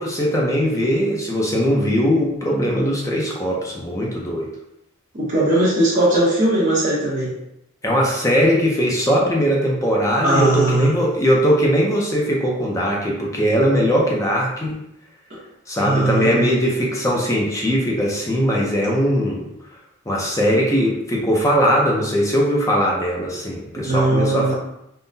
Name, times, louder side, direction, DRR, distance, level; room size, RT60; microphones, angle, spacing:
voice 1, 0.0-4.5 7.8-14.8 15.7-19.5 20.1-24.5, equal, 15° left, -2 dB, 0.5 m, -20 dB
voice 2, 5.1-7.3 10.2-10.9 15.8-16.5 23.8-24.5, right 1 dB, 40° right, -9 dB, 0.8 m, -19 dB
3.6 x 2.1 x 2.6 m, 0.83 s
head